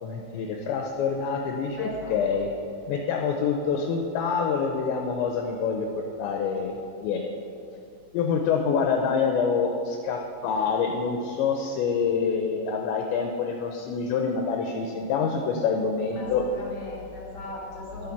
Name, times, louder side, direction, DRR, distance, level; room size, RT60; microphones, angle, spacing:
voice 1, 0.0-2.5 2.9-5.9 6.2-6.8 7.0-7.3 8.1-16.4, left 5 dB, 80° left, 3 dB, 2.8 m, -26 dB
voice 2, 1.8-2.4 16.1-18.1, left 1 dB, 25° left, -4 dB, 3.0 m, -38 dB
11.0 x 9.3 x 5.9 m, 2.7 s
omnidirectional pair, 5.6 m